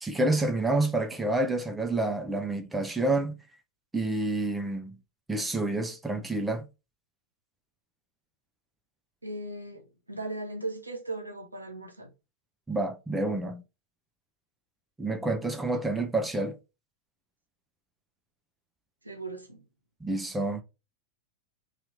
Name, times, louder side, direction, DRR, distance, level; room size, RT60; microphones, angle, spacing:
voice 1, 0.0-3.4 3.9-5.0 5.3-6.7 12.7-13.6 15.0-16.6 20.0-20.6, right 2 dB, 10° right, 0.5 m, -28 dB
voice 2, 9.2-9.8 10.1-12.1 19.0-19.6, right 2 dB, 85° right, 0.6 m, -37 dB
2.8 x 2.4 x 4.2 m
figure-of-eight pair, 90°, 0 cm